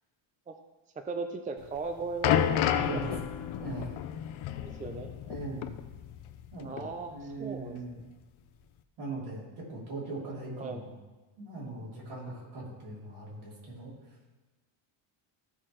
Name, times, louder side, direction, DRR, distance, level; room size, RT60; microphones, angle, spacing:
voice 1, 1.0-2.5 2.9-3.2 4.6-5.1 6.6-7.8 10.1-10.2 10.6-10.8, right 4 dB, 15° right, 6 dB, 0.5 m, -37 dB
sound 1, 1.6-6.5 6.8-6.9 7.7-7.8, left 10 dB, 70° left, 0.7 m, -31 dB
voice 2, 2.6-3.1 3.6-3.9 5.2-5.7 6.5-8.0 9.0-11.0 11.4-13.9, right 2 dB, 75° right, -5 dB, 3.5 m, -40 dB
15.0 x 5.9 x 3.2 m, 1.2 s
cardioid pair, 140°, 49 cm